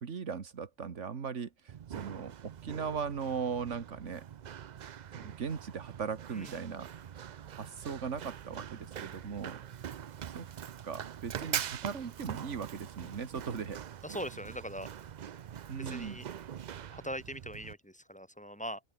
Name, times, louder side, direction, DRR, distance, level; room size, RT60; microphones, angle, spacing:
voice 1, 0.0-4.2 5.1-6.9 7.6-9.6 10.4-10.5 10.8-13.8 15.7-16.2, right 6 dB, 90° right, 1.9 m, -38 dB
Run, 1.7-17.7, right 9 dB, 50° right, 0.5 m, -43 dB
voice 2, 14.0-14.9 15.8-16.3 16.9-18.8, equal, 5° left, 2.3 m, -41 dB
open air
omnidirectional pair, 1.2 m